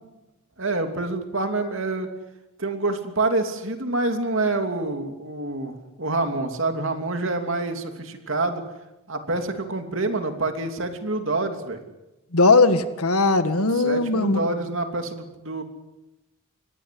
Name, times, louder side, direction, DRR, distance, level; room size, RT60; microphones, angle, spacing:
voice 1, 0.6-2.1 2.6-8.6 9.1-11.8 13.8-15.6, right 2 dB, 60° right, 6 dB, 3.0 m, -27 dB
voice 2, 12.3-14.4, left 3 dB, 90° left, 10 dB, 1.7 m, -19 dB
24.5 x 18.5 x 7.8 m, 0.98 s
head